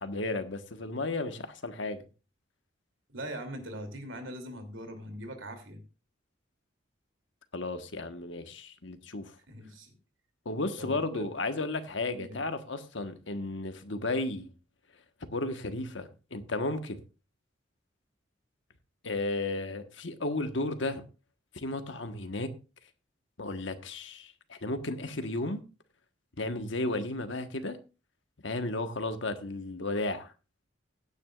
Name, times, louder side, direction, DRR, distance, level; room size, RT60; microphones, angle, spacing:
voice 1, 0.0-2.0 7.5-9.3 10.4-14.5 15.3-17.0 19.0-21.0 21.5-22.5 23.4-25.6 26.4-27.8 28.4-30.3, left 2 dB, 65° left, 1.4 m, -34 dB
voice 2, 3.1-5.8 9.5-9.9 10.8-11.3 12.1-12.4, equal, 80° right, 2.9 m, -41 dB
16.5 x 9.7 x 2.5 m
head